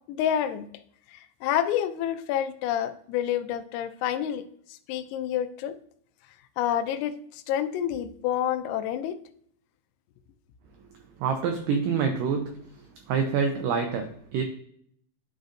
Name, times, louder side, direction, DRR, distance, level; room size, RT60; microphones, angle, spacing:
voice 1, 0.1-0.7 1.1-5.8 6.6-9.2, left 10 dB, 85° left, 2.6 m, -28 dB
voice 2, 11.2-12.6 13.1-14.4, right 6 dB, 90° right, 1.9 m, -26 dB
11.5 x 4.0 x 2.5 m
omnidirectional pair, 4.6 m